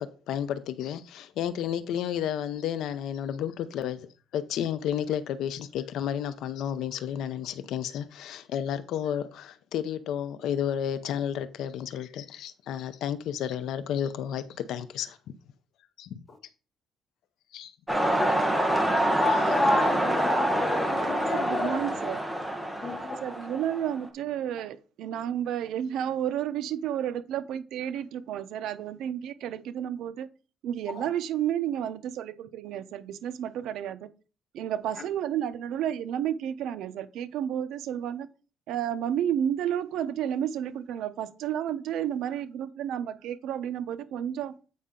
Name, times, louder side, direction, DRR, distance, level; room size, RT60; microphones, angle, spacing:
voice 1, 0.0-4.1 4.3-15.2 16.0-16.2 17.5-17.7, left 9 dB, 75° left, 0.7 m, -32 dB
sound 1, 17.9-24.1, right 1 dB, ahead, 1.2 m, -26 dB
voice 2, 19.2-21.8 22.8-23.2 30.9-31.1 35.0-35.1, left 2 dB, 25° left, 1.4 m, -29 dB
voice 3, 21.3-22.2 23.2-30.3 30.6-34.1 34.5-38.3 38.7-44.5, right 10 dB, 75° right, 0.7 m, -31 dB
8.4 x 5.5 x 3.8 m
cardioid pair, 165°, 0 cm